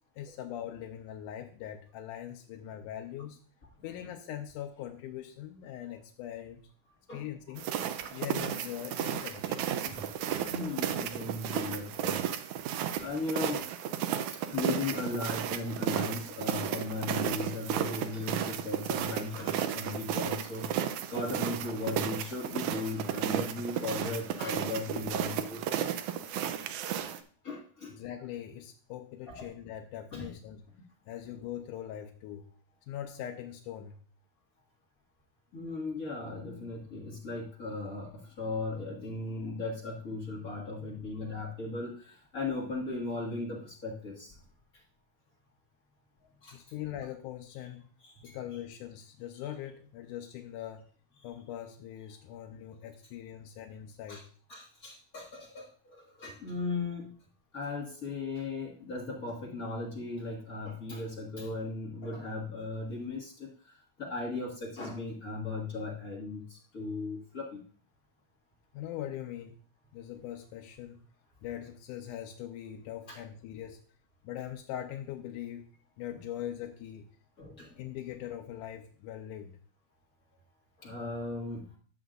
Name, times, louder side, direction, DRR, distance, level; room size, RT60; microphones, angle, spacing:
voice 1, 0.2-3.4 3.8-6.6 7.1-7.7 8.1-9.7 27.9-30.6 31.1-32.5 32.9-34.0 46.5-47.9 48.2-50.9 51.2-54.3 68.7-69.6 69.9-71.0 71.4-73.8 74.2-75.7 76.0-77.1 77.8-79.6, left 11 dB, 90° left, 4 dB, 2.2 m, -41 dB
sound 1, 7.6-27.2, right 10 dB, 80° right, 2.0 m, -33 dB
voice 2, 10.3-12.2 13.0-13.6 14.4-25.6 27.4-27.9 29.3-29.5 30.1-30.3 35.5-44.3 46.4-46.6 48.0-48.4 54.1-54.2 54.5-57.1 57.5-67.6 73.1-73.2 77.4-77.7 80.8-81.7, left 3 dB, 35° left, -1 dB, 1.7 m, -37 dB
12.0 x 8.0 x 2.5 m, 0.44 s
omnidirectional pair, 3.6 m